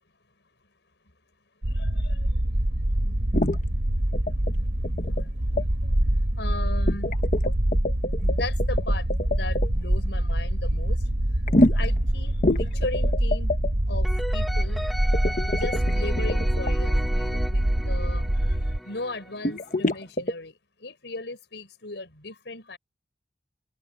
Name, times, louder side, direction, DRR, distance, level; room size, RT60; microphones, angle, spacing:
sound 1, 1.6-18.8, right 1 dB, 70° right, 1.6 m, -25 dB
voice 1, 1.7-3.4 4.7-5.3 5.8-7.2 8.2-11.1 11.7-13.5 13.9-14.9 15.4-22.8, left 2 dB, 85° left, 5.2 m, -38 dB
sound 2, 3.3-3.6 4.1-4.5 4.8-5.3 5.6-5.7 6.9-9.7 11.5-12.0 12.4-13.7 15.1-16.7 19.4-20.3, left 1 dB, 45° left, 1.2 m, -25 dB
sound 3, 14.0-20.0, equal, ahead, 2.0 m, -36 dB
head